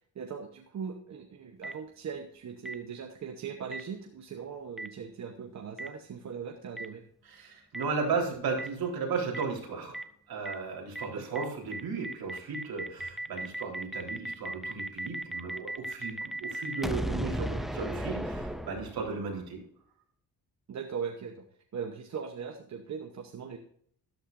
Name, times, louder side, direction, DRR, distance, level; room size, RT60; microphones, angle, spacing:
voice 1, 0.1-7.0 11.1-11.3 19.0-19.2 20.7-21.4 21.7-23.6, right 6 dB, 45° right, 4 dB, 1.0 m, -39 dB
Boom, 1.6-1.7 2.6-2.7 3.7-3.8 4.8-4.9 5.8-5.9 6.8-6.9 7.7-7.8 8.6-8.7 9.3-9.4 9.9-10.0 10.4-10.5 10.9-11.0 11.3-11.4 11.7-19.3, right 1 dB, ahead, 0.4 m, -35 dB
voice 2, 7.3-10.0 10.3-19.6, right 4 dB, 70° right, -1 dB, 4.1 m, -35 dB
13.0 x 11.5 x 2.6 m, 0.64 s
wide cardioid pair, 180°, 38 cm